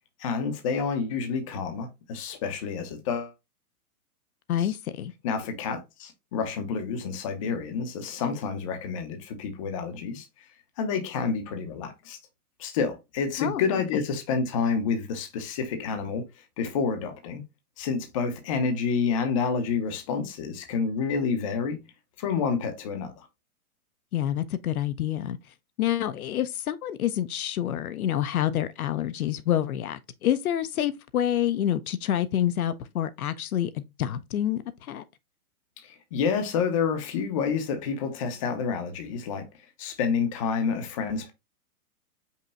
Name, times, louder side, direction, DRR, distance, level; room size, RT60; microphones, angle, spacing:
voice 1, 0.2-3.3 4.6-4.8 5.2-10.3 10.8-12.2 12.6-16.2 16.6-17.4 17.8-21.8 22.2-23.3 35.8-39.5 39.8-41.3, left 5 dB, 25° left, 0.6 m, -29 dB
voice 2, 4.5-5.1 13.4-13.6 24.1-25.4 25.8-33.7 34.0-34.6 34.9-35.0, left 11 dB, 70° left, 0.6 m, -27 dB
5.4 x 2.2 x 3.9 m
hypercardioid pair, 150°, 45 cm